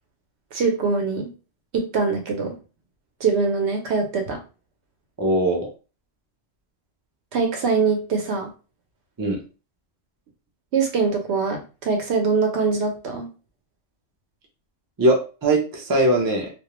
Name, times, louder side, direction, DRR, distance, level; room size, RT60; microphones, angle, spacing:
voice 1, 0.5-1.3 1.7-2.6 3.2-4.4 7.3-8.5 10.7-13.3, right 4 dB, 65° right, 4 dB, 0.8 m, -23 dB
voice 2, 5.2-5.7 9.2-9.4 15.0-16.5, right 1 dB, 35° right, 0 dB, 0.3 m, -20 dB
2.3 x 2.1 x 2.9 m, 0.33 s
omnidirectional pair, 1.3 m